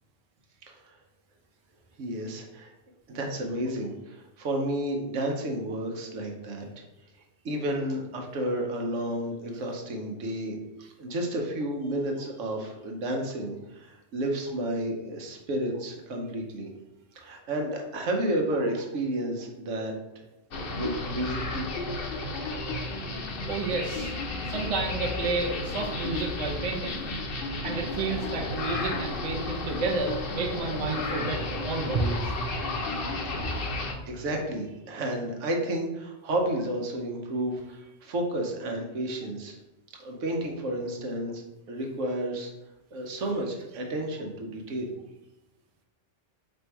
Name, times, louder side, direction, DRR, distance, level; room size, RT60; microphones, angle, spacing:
voice 1, 2.0-2.7 3.1-6.7 7.4-10.6 11.0-16.7 17.1-19.9 20.5-21.7 34.1-39.6 40.0-41.4 41.7-42.5 42.9-44.9, right 1 dB, 80° right, 2 dB, 1.1 m, -31 dB
sound 1, 20.5-33.9, left 2 dB, 55° left, 0.8 m, -33 dB
voice 2, 23.5-24.1 24.5-27.1 27.6-32.6 33.4-33.5, right 3 dB, 35° right, 0 dB, 0.6 m, -31 dB
4.4 x 2.6 x 4.5 m, 1.0 s
omnidirectional pair, 1.3 m